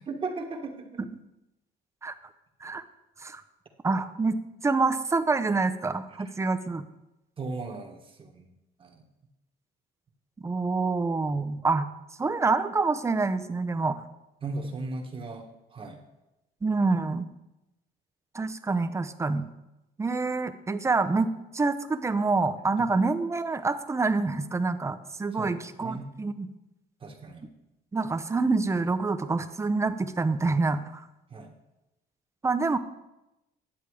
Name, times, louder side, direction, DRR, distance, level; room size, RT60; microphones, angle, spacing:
voice 1, 0.1-1.0 7.4-8.5 8.8-9.0 14.4-16.0 22.8-22.9 25.3-26.1 27.0-27.4 31.3-31.5, right 3 dB, 30° right, 2 dB, 1.4 m, -37 dB
voice 2, 3.8-6.8 10.4-11.9 12.2-14.0 16.6-17.3 18.3-19.5 20.0-26.5 27.9-31.1 32.4-32.8, right 3 dB, 15° right, 11 dB, 0.6 m, -27 dB
10.5 x 7.3 x 4.8 m, 0.94 s
cardioid pair, 110°, 17 cm